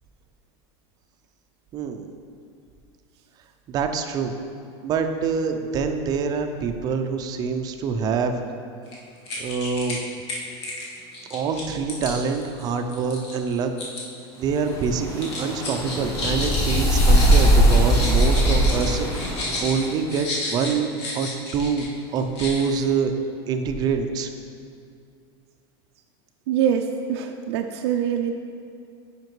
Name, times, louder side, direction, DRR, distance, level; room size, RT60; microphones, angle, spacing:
voice 1, 1.7-2.1 3.7-4.3 4.8-8.4 9.4-10.0 11.3-13.7 14.4-21.9 22.1-23.1 23.5-24.3, right 5 dB, 30° right, 6 dB, 0.4 m, -25 dB
sound 1, 8.9-9.0 9.3-10.0 10.3-14.0 14.3-14.8 15.2-21.9 22.2-22.8, left 2 dB, 90° left, 1.5 m, -32 dB
sound 2, 14.6-19.9, equal, 25° left, 1.2 m, -20 dB
voice 2, 26.5-28.4, right 8 dB, 85° right, 3 dB, 0.4 m, -24 dB
9.3 x 5.0 x 3.2 m, 2.4 s
supercardioid pair, 150°, 14 cm